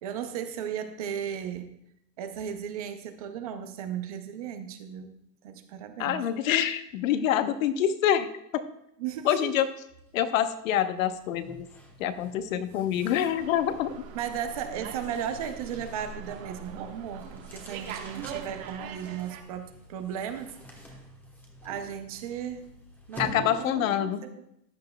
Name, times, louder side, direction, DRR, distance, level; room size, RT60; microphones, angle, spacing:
voice 1, 0.0-1.7 2.2-5.1 5.4-6.2 9.0-9.5 14.1-20.5 21.6-22.6 23.1-24.3, right 9 dB, 25° right, 8 dB, 0.4 m, -35 dB
voice 2, 6.0-8.3 8.5-8.6 9.2-9.7 10.1-11.7 12.0-13.9 23.2-24.2, left 10 dB, 55° left, 11 dB, 0.9 m, -26 dB
sound 1, 10.0-10.2 10.5-23.9, equal, 5° left, 1.0 m, -48 dB
Slam, 13.4-19.4, right 7 dB, 50° right, 1.4 m, -42 dB
14.0 x 10.5 x 2.2 m, 0.78 s
hypercardioid pair, 150°, 50 cm